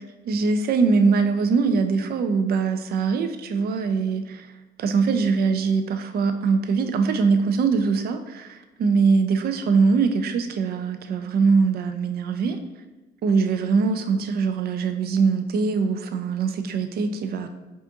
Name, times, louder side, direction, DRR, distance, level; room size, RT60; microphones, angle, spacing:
voice 1, 0.0-4.5 4.8-12.6 13.2-17.5, right 5 dB, 50° right, 8 dB, 0.4 m, -22 dB
5.0 x 2.5 x 2.7 m, 1.2 s
cardioid pair, 90°, 20 cm